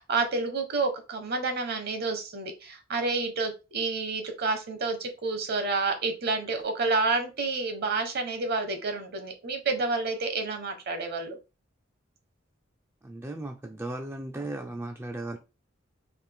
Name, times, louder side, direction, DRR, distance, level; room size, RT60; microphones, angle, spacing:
voice 1, 0.0-11.4, right 3 dB, 55° right, 1.0 m, -29 dB
voice 2, 13.0-15.4, right 2 dB, 10° right, 0.4 m, -36 dB
4.2 x 2.6 x 3.4 m
head